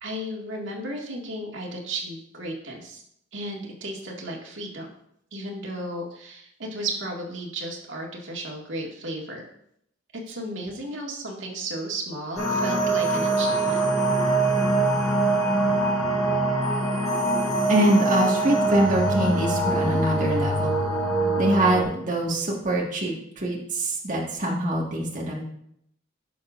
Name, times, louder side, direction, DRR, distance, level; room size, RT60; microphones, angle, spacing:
voice 1, 0.0-3.0 3.3-4.9 5.3-9.4 10.3-13.9, right 1 dB, 75° right, -1 dB, 2.0 m, -34 dB
sound 1, 12.4-21.8, right 2 dB, ahead, 3.7 m, -23 dB
voice 2, 17.7-20.8 21.4-25.4, right 1 dB, 40° right, -3 dB, 1.7 m, -24 dB
16.0 x 6.5 x 2.6 m, 0.72 s
head